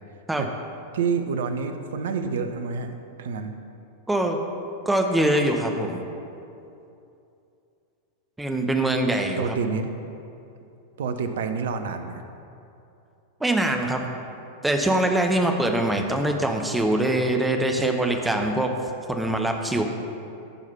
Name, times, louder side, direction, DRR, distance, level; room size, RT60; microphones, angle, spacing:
voice 1, 0.9-3.5 9.4-9.9 11.0-12.2, right 5 dB, 60° right, 8 dB, 0.7 m, -28 dB
voice 2, 4.1-4.4 4.8-6.0 8.4-9.5 13.4-14.1 14.6-18.7 19.1-19.8, right 1 dB, 5° right, 3 dB, 1.0 m, -23 dB
14.5 x 4.8 x 5.6 m, 2.7 s
figure-of-eight pair, 90°, 0 cm